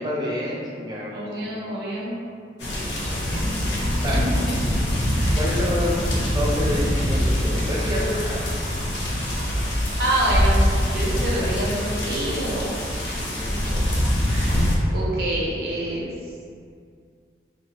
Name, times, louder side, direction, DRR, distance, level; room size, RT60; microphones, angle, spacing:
voice 1, 0.0-1.7 2.6-3.4 4.0-4.6 5.3-8.6 11.2-11.6 11.9-13.9, left 1 dB, 25° right, -5 dB, 0.5 m, -30 dB
voice 2, 1.1-2.1 4.1-4.2 4.5-4.6 5.2-5.4 10.0-12.7 13.5-13.8 14.3-16.1, right 1 dB, 65° right, -5 dB, 0.6 m, -27 dB
sound 1, 2.6-14.8, equal, 85° left, 0.5 m, -24 dB
2.9 x 2.1 x 2.8 m, 2.2 s
head